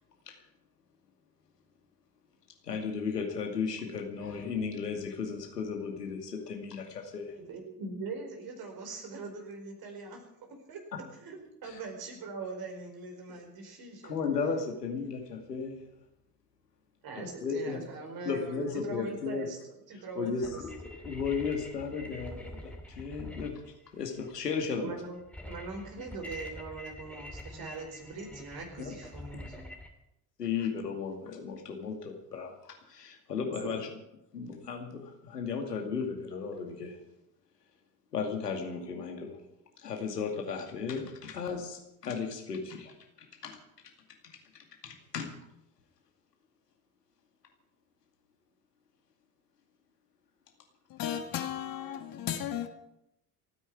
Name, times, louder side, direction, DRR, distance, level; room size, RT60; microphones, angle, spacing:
voice 1, 2.6-7.4 10.9-11.0 11.6-11.8 14.0-15.8 17.4-17.8 18.2-19.5 19.9-23.6 23.9-24.9 28.8-28.9 29.3-29.4 30.4-33.9 34.3-37.0 38.1-39.4 39.8-43.6 44.2-44.4 44.8-45.3, left 5 dB, 80° left, 2.5 m, -35 dB
voice 2, 7.4-10.8 11.1-14.1 17.0-19.6 19.9-20.6 24.8-29.7 33.6-33.8, right 3 dB, 50° right, 4.9 m, -42 dB
sound 1, 20.4-29.9, left 1 dB, 5° left, 2.7 m, -46 dB
voice 3, 51.0-52.7, left 10 dB, 45° left, 2.1 m, -34 dB
28.5 x 10.0 x 4.8 m
figure-of-eight pair, 55°, 47 cm